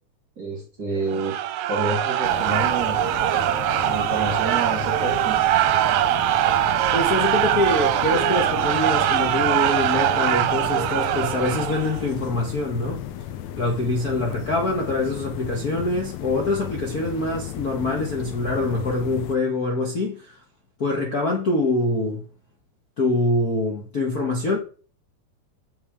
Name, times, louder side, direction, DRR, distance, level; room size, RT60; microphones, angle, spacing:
voice 1, 0.4-1.4 1.7-3.0 3.8-5.4, right 3 dB, 40° right, 1.7 m, -28 dB
sound 1, 1.1-12.0, right 13 dB, 75° right, 1.9 m, -22 dB
sound 2, 2.2-19.4, left 10 dB, 75° left, 1.8 m, -34 dB
voice 2, 6.9-13.0 13.6-20.4 20.8-22.2 23.0-24.6, left 2 dB, 45° left, 1.3 m, -24 dB
7.2 x 5.6 x 5.0 m
omnidirectional pair, 3.5 m